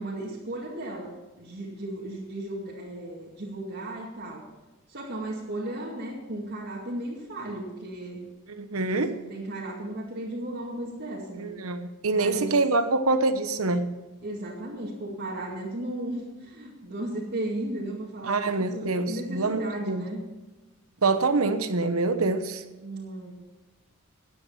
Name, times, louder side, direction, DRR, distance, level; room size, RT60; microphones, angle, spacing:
voice 1, 0.0-4.4 4.9-8.3 9.3-11.5 12.1-12.5 14.2-20.2 22.8-23.4, right 1 dB, 50° right, -5 dB, 2.4 m, -35 dB
voice 2, 8.5-9.2 11.4-13.9 18.2-20.1 21.0-22.6, right 3 dB, 80° right, 9 dB, 1.1 m, -25 dB
15.0 x 10.0 x 5.7 m, 1.1 s
head